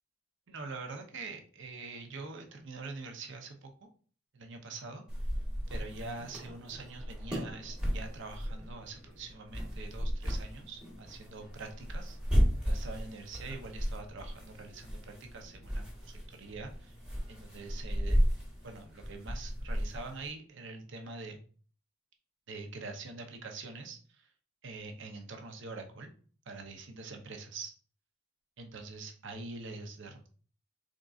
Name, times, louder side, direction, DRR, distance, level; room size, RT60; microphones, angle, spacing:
voice 1, 0.5-3.9 4.3-5.0 5.7-12.2 12.6-17.0 17.3-18.2 18.6-21.4 22.5-24.3 24.6-26.1 26.5-27.7 28.6-30.3, right 3 dB, 55° right, 4 dB, 0.6 m, -44 dB
sound 1, 5.1-20.3, equal, 5° right, 1.1 m, -34 dB
3.7 x 3.6 x 2.4 m, 0.43 s
head